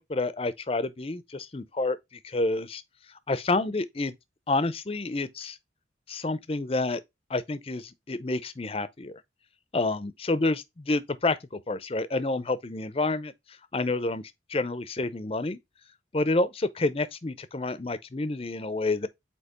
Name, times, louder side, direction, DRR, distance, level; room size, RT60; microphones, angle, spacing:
voice 1, 0.1-2.8 3.3-4.1 4.5-5.6 6.1-7.0 7.3-9.2 9.7-13.3 13.7-14.2 14.5-15.6 16.1-19.1, left 2 dB, 30° left, 0.6 m, -29 dB
8.1 x 2.9 x 4.2 m
head